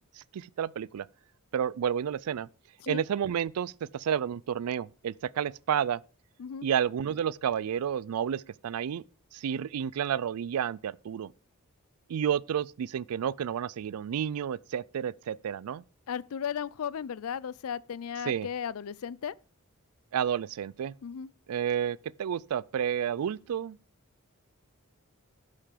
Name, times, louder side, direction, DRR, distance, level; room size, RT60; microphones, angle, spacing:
voice 1, 0.2-1.1 1.5-2.5 2.9-6.0 6.6-9.0 9.3-11.3 12.1-15.8 18.2-18.5 20.1-20.9 21.5-23.8, right 8 dB, 80° right, 0.3 m, -31 dB
voice 2, 16.1-19.3 21.0-21.3, left 7 dB, 70° left, 0.4 m, -35 dB
11.5 x 5.7 x 4.9 m
head